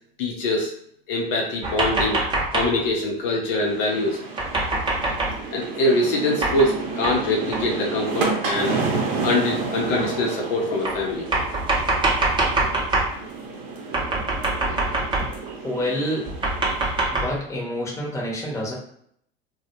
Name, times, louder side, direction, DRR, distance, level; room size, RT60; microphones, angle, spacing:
voice 1, 0.2-0.7 1.1-2.2 2.5-4.2 5.5-8.8 9.2-11.2, left 2 dB, 60° left, 0 dB, 0.7 m, -23 dB
sound 1, 1.6-2.8 4.4-5.4 6.4-6.8 7.0-7.2 7.5-7.7 8.5-8.6 9.6-9.7 10.8-13.1 13.9-15.5 16.3-17.3, right 2 dB, 15° right, 0.7 m, -24 dB
sound 2, 3.5-17.0, right 4 dB, 55° right, 0.7 m, -31 dB
voice 2, 15.6-16.3 17.2-18.7, equal, 10° left, -3 dB, 0.9 m, -27 dB
2.2 x 2.0 x 2.9 m, 0.67 s
hypercardioid pair, 85°, 30 cm